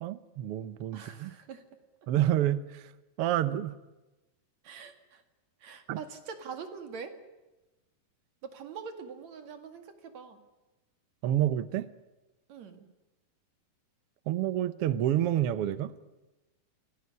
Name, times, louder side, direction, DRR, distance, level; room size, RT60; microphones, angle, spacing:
voice 1, 0.0-1.3 2.1-2.9 3.2-3.7 5.9-6.0 11.2-11.9 14.3-15.9, right 12 dB, 85° right, 13 dB, 1.3 m, -28 dB
voice 2, 0.9-1.6 4.6-5.2 5.6-7.1 8.4-10.4 12.5-12.9, right 6 dB, 55° right, 7 dB, 3.3 m, -44 dB
25.5 x 18.0 x 9.8 m, 1.1 s
omnidirectional pair, 4.0 m